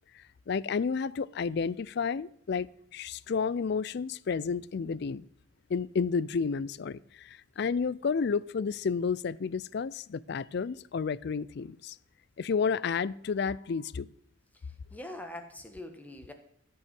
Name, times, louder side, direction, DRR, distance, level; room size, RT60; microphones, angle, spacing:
voice 1, 0.5-5.3 5.7-12.0 12.4-14.1, left 5 dB, 55° left, 0.4 m, -31 dB
voice 2, 14.5-16.3, left 1 dB, 10° left, 1.3 m, -44 dB
14.0 x 5.5 x 7.6 m
head